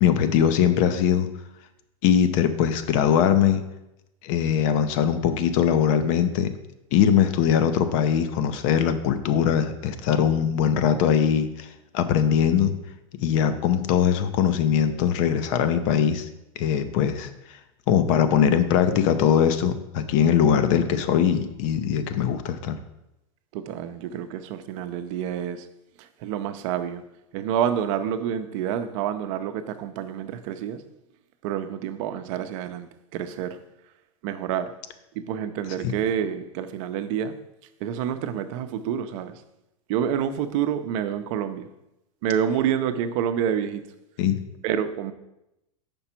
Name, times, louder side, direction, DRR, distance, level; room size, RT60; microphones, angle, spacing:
voice 1, 0.0-1.3 2.0-3.6 4.2-6.5 6.9-11.7 11.9-12.7 13.2-16.3 16.6-17.6 17.9-22.8 35.8-35.9 44.2-44.4, left 8 dB, 60° left, 0.8 m, -21 dB
voice 2, 23.5-25.7 26.0-27.0 27.3-30.8 31.4-33.6 34.2-34.7 35.1-37.4 37.8-39.4 39.9-41.7 42.2-43.8 44.6-45.1, right 9 dB, 60° right, 0.7 m, -28 dB
5.7 x 5.3 x 4.4 m
hypercardioid pair, 110°, 19 cm